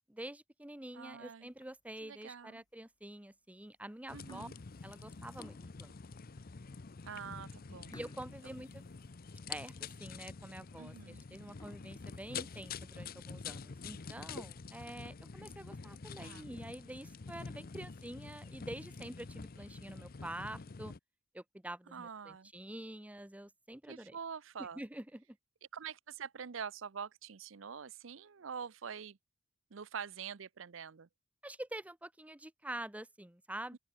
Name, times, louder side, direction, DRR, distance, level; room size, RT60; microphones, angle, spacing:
voice 1, 0.0-4.5 4.8-5.9 7.9-8.8 9.5-20.9 21.3-24.2 24.6-25.4 31.4-33.8, right 1 dB, 5° right, 0.8 m, -47 dB
voice 2, 0.9-1.5 2.0-2.6 4.1-4.5 7.0-8.0 10.8-11.2 16.2-16.5 21.9-22.5 23.9-24.8 25.7-29.2 29.7-31.1 33.7-33.8, right 6 dB, 75° right, 0.6 m, -45 dB
sound 1, 1.5-2.0 2.6-2.7 3.5-3.8 4.1-5.9 6.5-6.6 7.0-7.1 7.9-9.7 10.1-10.2 10.7-10.8 11.4-13.0 13.5-13.6 14.0-14.1 14.4-14.5 14.8-14.9 15.8-16.4, left 1 dB, 20° left, 3.2 m, -60 dB
sound 2, 4.1-21.0, left 5 dB, 50° left, 0.7 m, -47 dB
open air
head